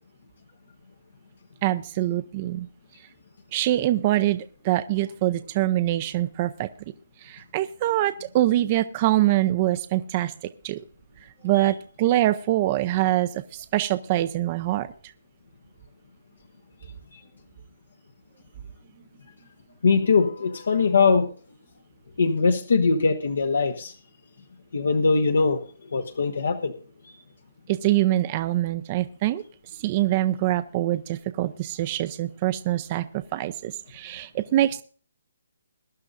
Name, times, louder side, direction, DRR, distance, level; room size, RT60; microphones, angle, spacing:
voice 1, 1.6-2.7 3.5-6.7 7.2-10.3 10.6-10.8 11.4-14.9 27.7-29.4 29.8-33.0 33.3-34.8, right 14 dB, 30° right, 12 dB, 0.5 m, -24 dB
voice 2, 19.8-21.3 22.2-23.9 24.7-25.6 25.9-26.7 27.1-27.2, left 4 dB, 75° left, 6 dB, 1.1 m, -21 dB
21.5 x 11.0 x 2.5 m, 0.42 s
hypercardioid pair, 155°, 0 cm